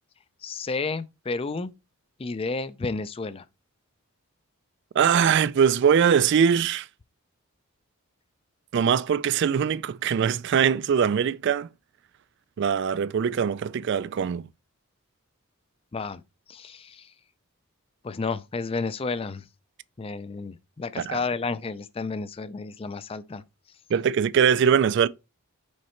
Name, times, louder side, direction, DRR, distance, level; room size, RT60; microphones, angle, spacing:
voice 1, 0.4-1.7 2.2-3.4 15.9-16.2 16.5-17.1 18.0-19.4 20.0-23.4, left 4 dB, 25° left, 0.4 m, -31 dB
voice 2, 5.0-6.9 8.7-11.7 12.6-14.4 21.0-21.2 23.9-25.1, right 7 dB, 55° right, 0.3 m, -22 dB
6.4 x 4.2 x 4.4 m
head